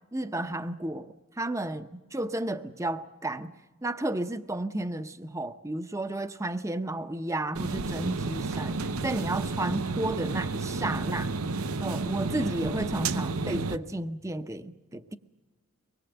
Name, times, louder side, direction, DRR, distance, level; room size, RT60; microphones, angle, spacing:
voice 1, 0.1-3.5 3.8-11.3 11.8-15.2, right 1 dB, 15° right, 0.7 m, -32 dB
sound 1, 7.5-13.8, right 3 dB, 85° right, 0.8 m, -31 dB
24.0 x 21.0 x 8.0 m
head